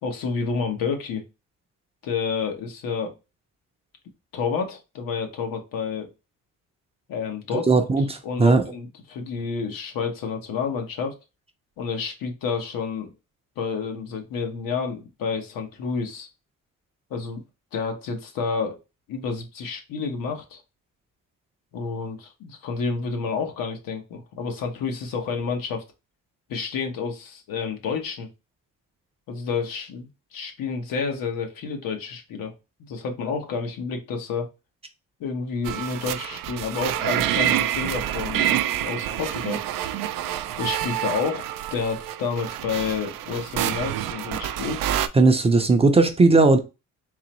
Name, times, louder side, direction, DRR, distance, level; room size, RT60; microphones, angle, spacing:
voice 1, 0.0-1.2 2.0-3.1 4.3-6.1 7.1-7.8 8.2-11.2 11.8-13.1 13.6-16.3 17.1-17.4 17.7-18.8 19.1-20.6 21.7-25.8 26.5-28.3 29.3-34.5 35.2-39.6 40.6-44.9, left 5 dB, 85° left, 1.1 m, -29 dB
voice 2, 7.7-8.6 45.1-46.6, right 3 dB, 20° right, 0.5 m, -17 dB
sound 1, 35.6-45.1, right 11 dB, 80° right, 0.5 m, -27 dB
3.9 x 2.9 x 3.0 m
cardioid pair, 140°, 33 cm